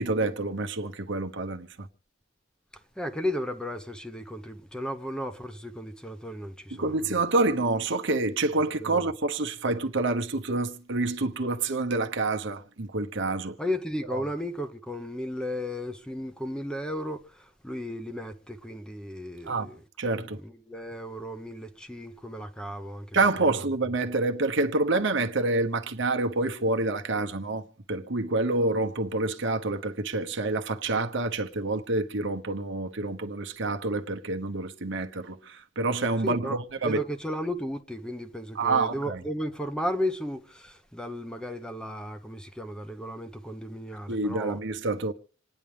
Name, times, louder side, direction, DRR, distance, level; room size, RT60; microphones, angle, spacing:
voice 1, 0.0-1.9 6.8-13.5 14.1-14.2 19.5-19.7 20.0-20.4 23.1-27.6 27.9-37.0 38.6-39.2 44.1-45.1, right 2 dB, 65° right, 1.1 m, -27 dB
voice 2, 2.7-7.2 8.8-9.0 13.6-19.8 20.2-23.2 23.5-23.6 36.2-44.6, equal, 5° left, 0.9 m, -35 dB
27.0 x 10.0 x 3.4 m
head